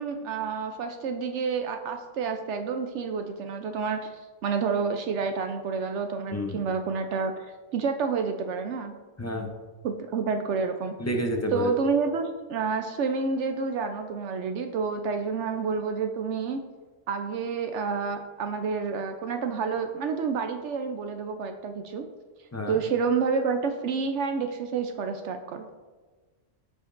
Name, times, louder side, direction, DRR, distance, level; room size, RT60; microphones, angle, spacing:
voice 1, 0.0-4.1 4.4-8.9 9.8-11.0 11.5-16.6 17.1-22.1 22.7-25.7, right 5 dB, 70° right, 6 dB, 0.8 m, -29 dB
voice 2, 6.3-6.6 9.2-9.5 11.0-11.7 22.5-22.8, equal, 20° left, 2 dB, 0.5 m, -29 dB
14.0 x 5.1 x 2.5 m, 1.4 s
omnidirectional pair, 1.3 m